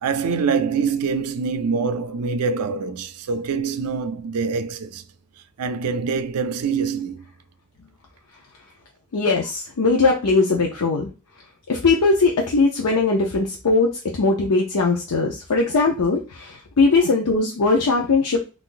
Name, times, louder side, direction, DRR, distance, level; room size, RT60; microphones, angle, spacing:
voice 1, 0.0-5.0 5.6-7.3, right 5 dB, 85° right, 0.4 m, -24 dB
voice 2, 9.1-11.1 11.7-18.5, left 3 dB, 90° left, 0.6 m, -20 dB
3.8 x 2.5 x 2.5 m
head